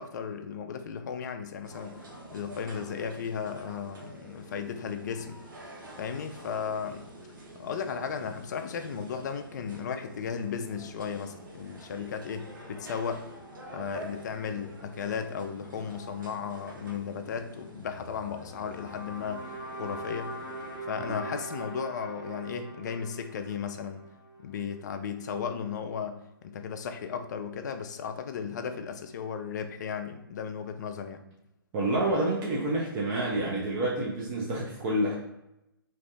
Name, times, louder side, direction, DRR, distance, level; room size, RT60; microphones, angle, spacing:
voice 1, 0.0-2.0 2.3-5.4 6.0-7.1 7.6-13.2 13.7-19.5 19.8-20.3 20.8-24.0 24.4-31.2, left 7 dB, 50° left, 7 dB, 0.4 m, -35 dB
sound 1, 1.6-20.8, right 1 dB, 60° right, 0.9 m, -47 dB
sound 2, 18.5-24.8, right 1 dB, 25° left, 0.7 m, -42 dB
voice 2, 31.7-35.1, right 1 dB, 25° right, -4 dB, 0.5 m, -28 dB
2.6 x 2.4 x 3.3 m, 0.87 s
figure-of-eight pair, 135°, 12 cm